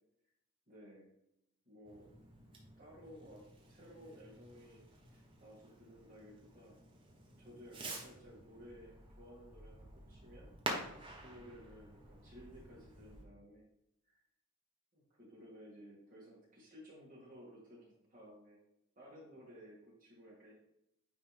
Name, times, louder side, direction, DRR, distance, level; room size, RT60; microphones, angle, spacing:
voice 1, 0.7-1.1 1.6-2.1 2.8-6.8 7.4-10.5 10.8-13.7 14.0-14.2 14.9-18.6 19.0-20.5, equal, 40° right, -6 dB, 2.3 m, -56 dB
Fireworks, 1.8-13.2, right 2 dB, 20° right, 1.1 m, -49 dB
9.4 x 3.5 x 3.5 m, 0.80 s
head